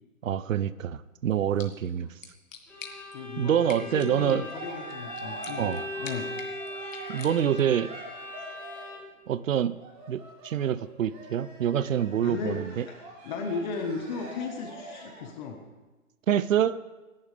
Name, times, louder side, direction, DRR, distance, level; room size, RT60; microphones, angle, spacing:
voice 1, 0.2-2.1 3.4-4.4 5.6-5.8 7.1-7.9 9.3-9.8 10.1-12.8 16.3-16.8, right 9 dB, 65° right, 17 dB, 0.8 m, -26 dB
sound 1, 1.3-7.8, left 6 dB, 65° left, 2.2 m, -48 dB
Bowed string instrument, 2.7-9.2, left 1 dB, 5° left, 2.5 m, -40 dB
voice 2, 3.1-6.3 12.2-12.6 13.2-15.6, left 4 dB, 30° left, 4 dB, 1.5 m, -35 dB
Cheering, 4.0-9.0 9.8-15.3, right 2 dB, 25° right, 2.6 m, -45 dB
27.0 x 11.0 x 3.5 m, 1.2 s
hypercardioid pair, 145°, 42 cm